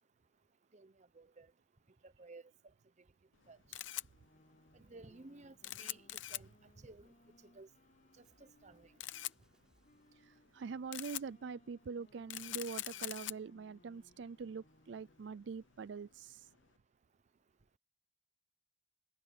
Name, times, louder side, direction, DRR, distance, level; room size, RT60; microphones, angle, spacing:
voice 1, 0.7-1.5 2.0-2.4 3.5-3.6 4.7-6.5 6.8-7.1 7.5-7.7 8.2-8.9, right 3 dB, 35° right, 0.8 m, -56 dB
Camera, 3.3-16.7, left 14 dB, 75° left, 0.8 m, -47 dB
sound 1, 4.1-9.4 9.8-15.4, left 1 dB, 40° left, 6.1 m, -69 dB
sound 2, 8.2-10.6, equal, 5° right, 6.2 m, -78 dB
voice 2, 10.2-16.5, right 5 dB, 65° right, 0.4 m, -44 dB
head